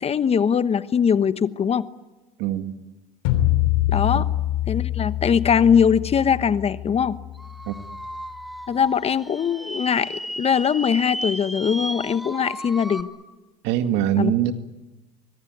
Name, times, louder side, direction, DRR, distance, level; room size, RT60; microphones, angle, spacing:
voice 1, 0.0-1.9 3.9-4.2 4.7-7.2 8.7-13.1 14.2-14.3, left 7 dB, 35° left, 14 dB, 1.1 m, -21 dB
voice 2, 2.4-2.7 4.1-4.2 7.7-7.8 13.6-14.5, right 11 dB, 70° right, 9 dB, 2.0 m, -23 dB
sound 1, 3.2-8.3, left 14 dB, 75° left, 3.1 m, -25 dB
sound 2, 7.4-13.0, equal, ahead, 2.2 m, -34 dB
24.5 x 23.0 x 9.4 m, 1.1 s
supercardioid pair, 85°, 19 cm